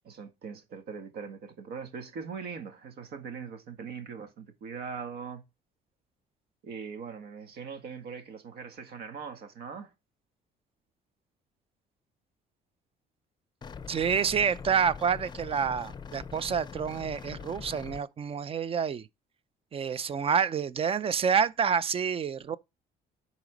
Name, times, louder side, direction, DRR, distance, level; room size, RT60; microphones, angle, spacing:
voice 1, 0.0-5.4 6.6-9.9, right 6 dB, 70° right, 2.0 m, -41 dB
sound 1, 13.6-18.0, left 6 dB, 25° left, 0.6 m, -43 dB
voice 2, 13.9-19.1 19.7-22.6, right 7 dB, 35° right, 0.6 m, -28 dB
10.5 x 4.2 x 5.2 m
cardioid pair, 110°, 17 cm